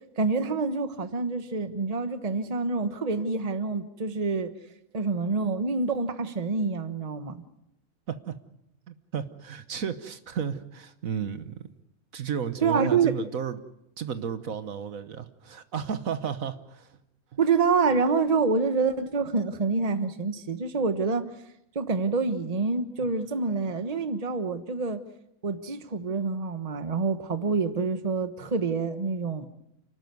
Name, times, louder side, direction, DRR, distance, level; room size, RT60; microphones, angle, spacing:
voice 1, 0.2-4.5 4.9-7.4 12.6-13.1 17.4-21.3 21.7-25.0 25.4-29.5, right 4 dB, 30° right, 1.2 m, -27 dB
voice 2, 8.9-11.7 12.1-13.6 14.0-16.9, right 7 dB, 70° right, 1.5 m, -33 dB
29.5 x 12.5 x 9.5 m
omnidirectional pair, 1.5 m